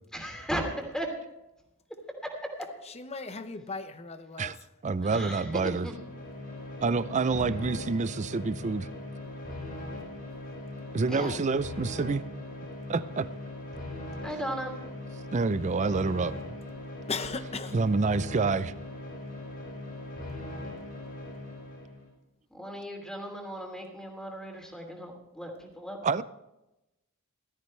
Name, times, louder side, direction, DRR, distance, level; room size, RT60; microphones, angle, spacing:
voice 1, 0.1-1.1 5.0-5.5 5.8-5.9 11.1-11.3 14.2-14.7 22.5-26.0, equal, 5° left, 2.9 m, -36 dB
voice 2, 2.8-4.6 7.3-7.5 11.2-11.4 17.1-17.8, left 4 dB, 30° left, 0.8 m, -37 dB
voice 3, 4.8-5.9 6.8-8.9 10.9-12.2 12.9-13.3 15.3-16.6 17.7-18.7 26.0-26.2, right 4 dB, 35° right, 0.5 m, -27 dB
sound 1, 5.3-22.1, left 1 dB, 50° left, 5.4 m, -40 dB
17.5 x 13.5 x 3.3 m
head